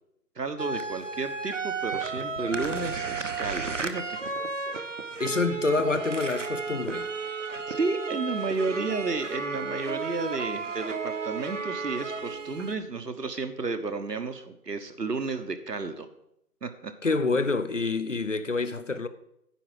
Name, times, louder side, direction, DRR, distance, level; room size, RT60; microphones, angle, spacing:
voice 1, 0.3-4.2 7.7-16.1 16.6-16.9, right 3 dB, 80° right, 1.3 m, -32 dB
sound 1, 0.6-12.8, right 4 dB, 50° right, 0.8 m, -33 dB
voice 2, 5.2-7.1 17.0-19.1, left 3 dB, 50° left, 0.6 m, -27 dB
9.9 x 4.7 x 7.8 m
figure-of-eight pair, 170°, 48 cm